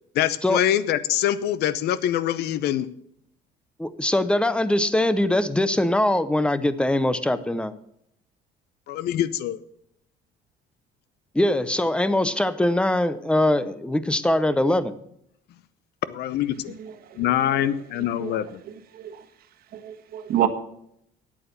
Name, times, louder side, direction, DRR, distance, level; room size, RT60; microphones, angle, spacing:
voice 1, 0.1-2.9 8.9-9.6 16.1-16.8 17.2-18.6, left 11 dB, 70° left, 16 dB, 0.7 m, -24 dB
voice 2, 3.8-7.8 11.3-14.9, left 1 dB, 5° left, 14 dB, 0.7 m, -22 dB
voice 3, 16.7-17.2 17.5-17.6 18.1-19.2 19.7-20.5, right 11 dB, 65° right, 8 dB, 1.3 m, -30 dB
9.1 x 8.4 x 6.8 m, 0.73 s
cardioid pair, 110°, 17 cm